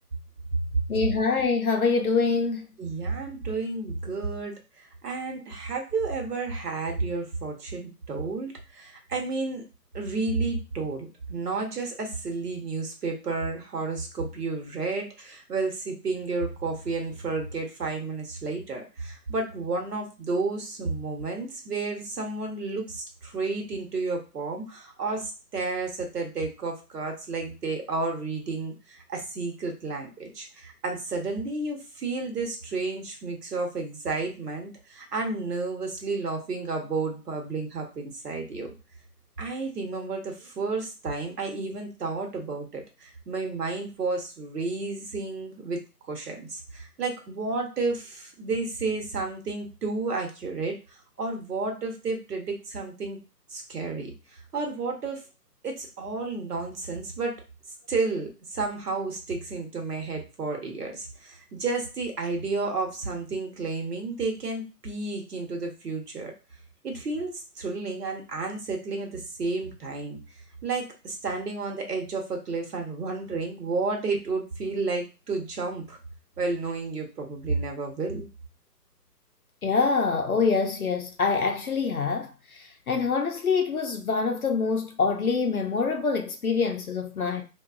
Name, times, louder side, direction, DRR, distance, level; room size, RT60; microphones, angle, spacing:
voice 1, 0.9-2.7 79.6-87.4, left 4 dB, 60° left, 0.5 m, -25 dB
voice 2, 2.8-9.6 9.9-38.7 39.4-45.8 46.1-53.2 53.5-55.3 55.6-57.4 57.9-66.3 66.8-70.2 70.6-76.0 76.4-78.3, right 3 dB, 70° right, 1.0 m, -31 dB
2.8 x 2.3 x 2.3 m
hypercardioid pair, 175°, 49 cm